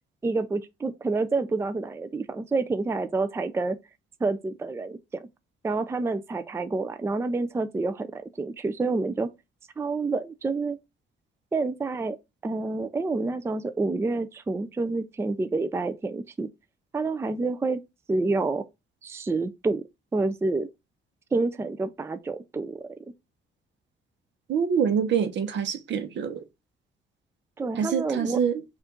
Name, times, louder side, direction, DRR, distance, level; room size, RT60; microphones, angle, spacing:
voice 1, 0.2-3.8 4.2-5.3 5.6-9.3 9.8-10.8 11.5-12.2 12.4-16.5 16.9-17.8 18.1-18.6 19.0-19.8 20.1-20.7 21.3-22.9 27.6-28.4, right 3 dB, 15° right, 0.4 m, -28 dB
voice 2, 24.5-26.4 27.8-28.5, right 7 dB, 65° right, 0.8 m, -25 dB
4.4 x 2.5 x 3.7 m
cardioid pair, 90°, 20 cm